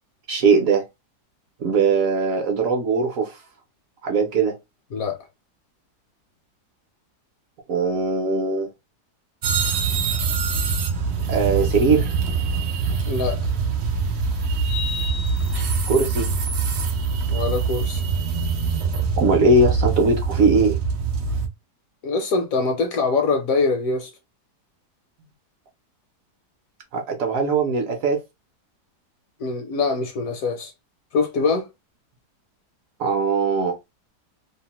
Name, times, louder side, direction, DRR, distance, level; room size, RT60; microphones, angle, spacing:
voice 1, 0.3-0.8 1.6-3.4 4.0-4.5 7.7-8.7 11.3-12.2 15.9-16.3 19.1-20.8 26.9-28.2 33.0-33.8, right 4 dB, 65° right, 0.9 m, -20 dB
sound 1, 9.4-21.5, right 5 dB, 85° right, 0.5 m, -24 dB
sound 2, 13.0-13.1 14.6-16.1, left 7 dB, 35° left, 0.3 m, -34 dB
voice 2, 13.1-13.4 17.3-18.0 22.0-24.1 29.4-30.7 31.1-31.7, left 4 dB, 70° left, 0.9 m, -23 dB
2.8 x 2.1 x 2.9 m
omnidirectional pair, 1.8 m